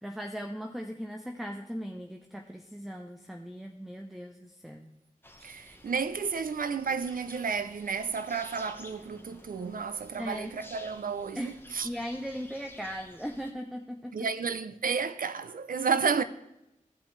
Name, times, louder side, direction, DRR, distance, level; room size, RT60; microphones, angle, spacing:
voice 1, 0.0-4.9 10.2-10.5 11.3-11.5 11.8-14.3, equal, ahead, 0.7 m, -38 dB
sound 1, 5.2-13.5, left 1 dB, 15° left, 1.2 m, -52 dB
voice 2, 5.4-11.9 14.1-16.2, right 5 dB, 80° right, 0.5 m, -31 dB
15.0 x 5.8 x 3.3 m
cardioid pair, 45°, 14 cm